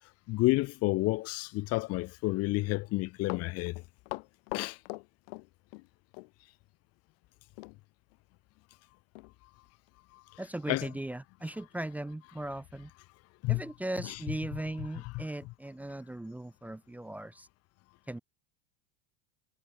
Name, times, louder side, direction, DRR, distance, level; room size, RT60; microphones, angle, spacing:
voice 1, 0.3-3.7 4.5-4.8 10.7-10.9 13.4-13.6 14.0-14.2 15.1-15.2, left 21 dB, 50° left, 1.5 m, -30 dB
Run, 3.0-5.9 6.1-6.3 7.6-7.8 8.1-8.2 8.7-8.8 9.1-9.3 9.9-10.0, left 31 dB, 65° left, 1.2 m, -41 dB
voice 2, 10.4-12.9 13.5-17.5 18.1-18.2, right 1 dB, 5° right, 1.2 m, -38 dB
supercardioid pair, 130°, 31 cm